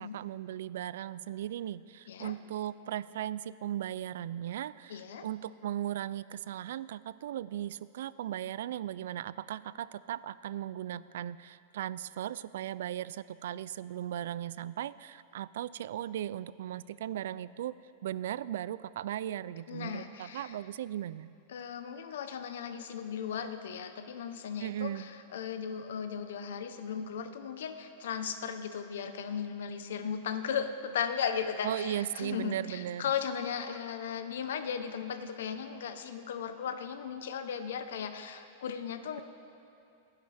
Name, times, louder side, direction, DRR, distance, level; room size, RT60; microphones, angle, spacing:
voice 1, 0.0-21.3 24.6-25.1 31.6-33.1, right 11 dB, 70° right, 18 dB, 0.3 m, -37 dB
voice 2, 4.9-5.3 19.7-20.6 21.5-39.2, left 7 dB, 80° left, 9 dB, 1.0 m, -36 dB
26.5 x 10.5 x 3.5 m, 2.6 s
supercardioid pair, 170°, 0 cm